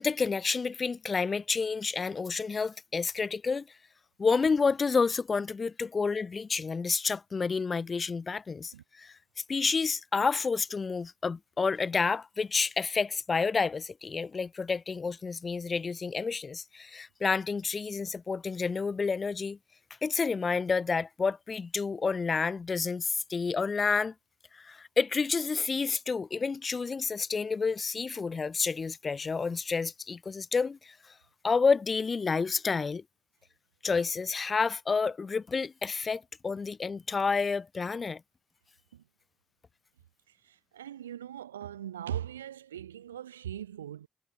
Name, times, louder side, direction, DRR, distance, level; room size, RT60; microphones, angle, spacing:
voice 1, 0.0-3.7 4.2-9.1 9.5-19.6 20.0-24.1 24.5-31.1 31.4-33.0 33.8-38.2, left 4 dB, 35° left, 4.7 m, -29 dB
voice 2, 40.4-44.1, right 10 dB, 85° right, 2.2 m, -40 dB
figure-of-eight pair, 40°, 0 cm